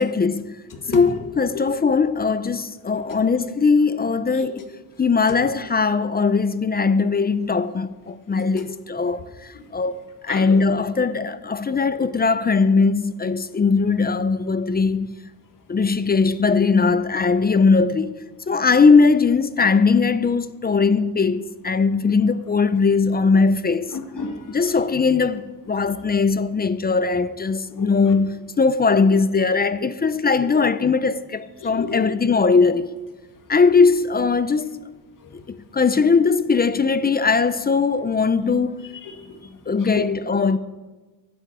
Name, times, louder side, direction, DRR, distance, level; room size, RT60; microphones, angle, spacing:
voice 1, 0.0-0.5 0.9-4.6 5.0-9.2 9.7-15.1 15.7-18.1 18.5-23.9 24.5-32.9 33.5-34.8 35.5-38.7 39.7-40.6, left 4 dB, 25° left, 0.4 m, -19 dB
voice 2, 0.7-1.2 1.5-1.6 2.9-3.0 4.3-4.5 5.3-5.4 8.6-8.7 9.5-9.6 10.3-10.7 20.8-20.9 23.9-24.8 27.8-28.2 31.6-32.3 38.9-39.4 39.7-40.0, left 5 dB, 50° left, 2.1 m, -32 dB
11.5 x 8.5 x 8.8 m
cardioid pair, 130°, 42 cm